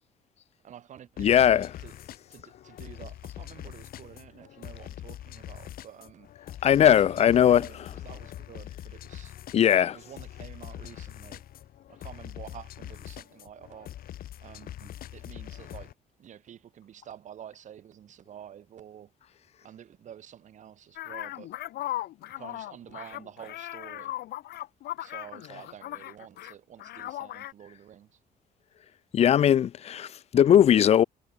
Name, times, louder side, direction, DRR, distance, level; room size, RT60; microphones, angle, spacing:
voice 1, 0.6-1.9 2.3-6.3 6.9-9.4 9.9-11.4 11.9-13.9 14.4-15.9 16.2-19.1 19.6-21.5 22.4-24.1 25.0-28.2, right 10 dB, 50° right, 2.0 m, -48 dB
sound 1, 1.2-15.9, left 12 dB, 65° left, 5.6 m, -43 dB
voice 2, 1.2-1.7 6.6-7.6 9.5-10.0 29.1-31.0, left 10 dB, 40° left, 0.6 m, -19 dB
sound 2, 21.0-26.5 26.8-27.5, left 15 dB, 90° left, 2.3 m, -38 dB
cardioid pair, 165°, 16 cm